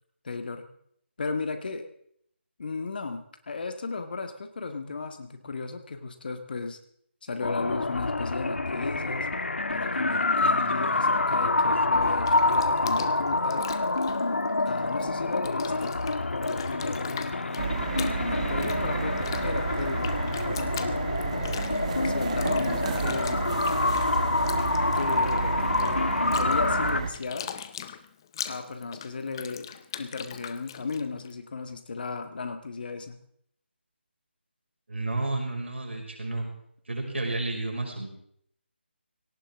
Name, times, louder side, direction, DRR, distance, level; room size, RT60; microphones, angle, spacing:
voice 1, 0.2-0.7 1.2-1.9 2.6-6.8 7.2-9.3 9.7-13.7 14.6-16.0 16.3-17.8 18.3-20.1 20.4-21.1 21.9-23.5 24.9-27.5 28.5-33.2, left 4 dB, 50° left, 7 dB, 1.8 m, -35 dB
sound 1, 7.4-27.0, left 2 dB, 85° left, 1.1 m, -27 dB
Bathtub (filling or washing), 12.0-15.1 15.3-31.3, left 9 dB, 20° left, 0.6 m, -42 dB
sound 2, 17.6-27.1, right 5 dB, 35° right, 1.4 m, -32 dB
voice 2, 34.9-36.5 36.9-38.1, right 2 dB, 80° right, 1 dB, 5.7 m, -31 dB
18.0 x 17.0 x 3.7 m, 0.68 s
figure-of-eight pair, 165°, 6 cm